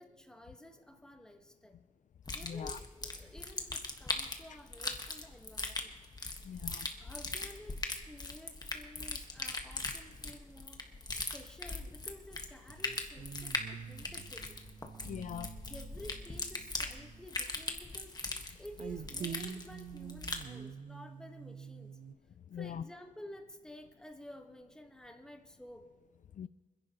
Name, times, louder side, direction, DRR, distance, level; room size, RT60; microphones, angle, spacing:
voice 1, 0.0-1.8 2.3-6.0 7.0-14.6 15.7-22.0 22.5-25.9, left 1 dB, 5° left, 1.2 m, -52 dB
sound 1, 2.2-20.5, left 2 dB, 30° left, 1.4 m, -40 dB
voice 2, 2.4-2.8 4.5-4.6 6.4-6.9 15.0-15.6 22.5-22.8 26.4-26.5, left 8 dB, 70° left, 0.4 m, -41 dB
sound 2, 12.7-17.3 18.8-22.1, right 7 dB, 90° right, 0.6 m, -47 dB
27.0 x 10.5 x 2.9 m
wide cardioid pair, 115°, 14 cm